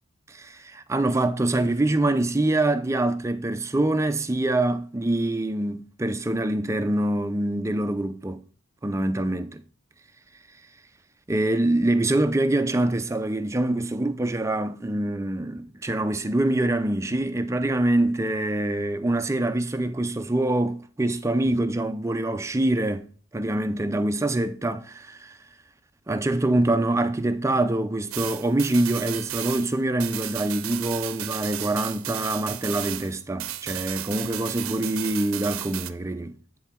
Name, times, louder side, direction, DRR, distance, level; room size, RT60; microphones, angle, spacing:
voice 1, 0.3-8.4 8.8-9.6 11.3-25.4 26.1-36.4, right 1 dB, 15° right, 0.4 m, -25 dB
sound 1, 28.1-33.1 33.4-35.9, right 13 dB, 85° right, 0.6 m, -34 dB
9.2 x 3.8 x 4.3 m
head